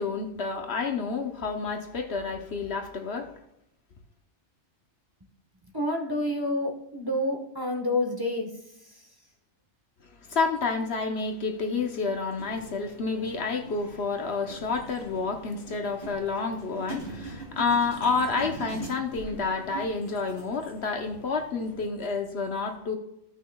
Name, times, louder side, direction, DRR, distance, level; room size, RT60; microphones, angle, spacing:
voice 1, 0.0-3.3 10.3-23.0, left 4 dB, 60° left, 1.0 m, -29 dB
voice 2, 5.7-9.1, left 1 dB, 20° right, 1.2 m, -29 dB
sound 1, 12.4-21.7, right 3 dB, 45° right, 2.9 m, -43 dB
15.0 x 6.1 x 2.3 m
omnidirectional pair, 1.3 m